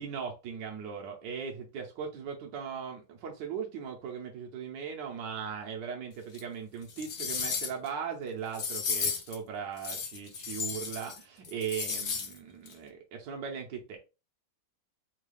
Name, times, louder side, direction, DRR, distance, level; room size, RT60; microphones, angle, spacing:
voice 1, 0.0-14.0, right 7 dB, 70° right, 1 dB, 1.3 m, -38 dB
sound 1, 6.3-6.4 6.9-7.9 8.5-9.4 9.8-11.2 11.4-12.3 12.7-12.8, left 5 dB, 90° left, 0.6 m, -34 dB
3.6 x 2.3 x 3.2 m, 0.30 s
omnidirectional pair, 2.1 m